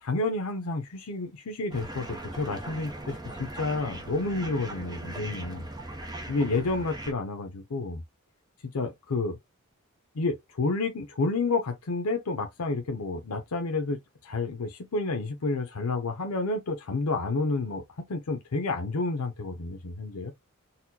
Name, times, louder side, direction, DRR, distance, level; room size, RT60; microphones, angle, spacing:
voice 1, 0.0-5.6 6.3-8.0 8.7-9.4 10.1-20.3, left 3 dB, 90° left, 0.6 m, -30 dB
sound 1, 1.7-7.1, right 1 dB, 20° right, 0.7 m, -39 dB
4.1 x 2.2 x 2.8 m
head